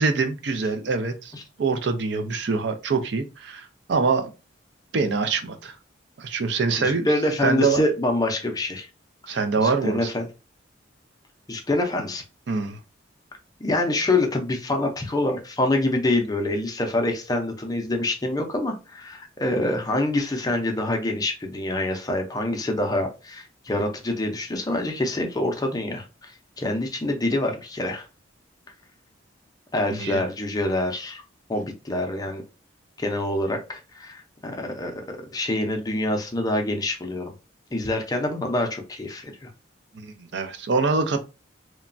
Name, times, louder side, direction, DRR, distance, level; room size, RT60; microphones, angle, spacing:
voice 1, 0.0-1.3 1.6-4.3 4.9-5.7 6.2-7.1 7.4-7.8 9.3-10.1 12.5-12.8 29.9-30.2 39.9-41.2, right 4 dB, 65° right, 0.4 m, -24 dB
voice 2, 6.8-8.9 9.3-10.3 11.5-12.2 13.6-28.1 29.7-31.2 31.5-32.4 33.0-37.3 37.7-39.5, left 1 dB, 20° left, 0.5 m, -26 dB
3.0 x 2.2 x 2.4 m
head